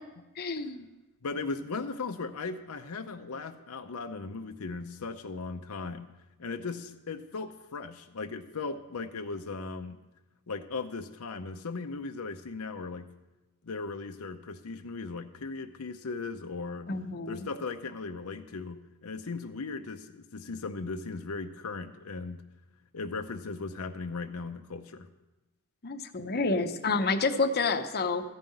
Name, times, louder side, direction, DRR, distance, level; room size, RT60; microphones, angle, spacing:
voice 1, 0.4-0.9 16.9-17.5 25.8-28.2, left 3 dB, 45° left, 5 dB, 0.8 m, -29 dB
voice 2, 1.2-6.1 6.4-10.0 10.5-13.1 13.6-16.9 17.3-22.4 22.9-25.1, left 4 dB, 80° left, 5 dB, 0.7 m, -37 dB
14.5 x 5.6 x 9.0 m, 1.1 s
head